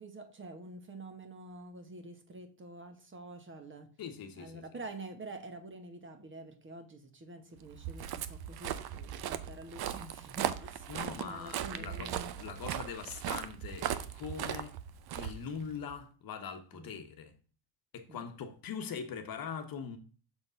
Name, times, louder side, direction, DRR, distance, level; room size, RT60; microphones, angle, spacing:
voice 1, 0.0-3.9 4.4-10.9 11.2-12.3 16.7-17.0 18.1-18.2, right 2 dB, 25° right, 1.1 m, -47 dB
voice 2, 4.0-4.6 10.9-14.7 15.1-17.3 17.9-20.0, left 6 dB, 45° left, 1.2 m, -42 dB
Walk footsteps, 7.7-15.9, right 10 dB, 55° right, 0.7 m, -38 dB
6.4 x 3.7 x 5.5 m
cardioid pair, 110°, 47 cm